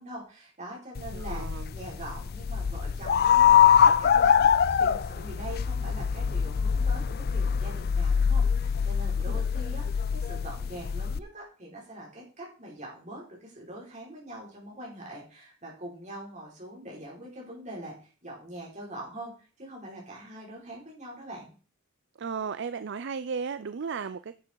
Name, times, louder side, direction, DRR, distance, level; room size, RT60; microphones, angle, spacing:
voice 1, 0.0-19.3 19.6-21.5, right 1 dB, 35° right, -3 dB, 5.0 m, -43 dB
sound 1, 1.0-11.2, left 8 dB, 50° left, 0.4 m, -24 dB
voice 2, 1.1-1.7 9.3-9.4 22.2-24.3, right 5 dB, 55° right, 13 dB, 0.4 m, -35 dB
11.0 x 7.2 x 4.6 m, 0.37 s
head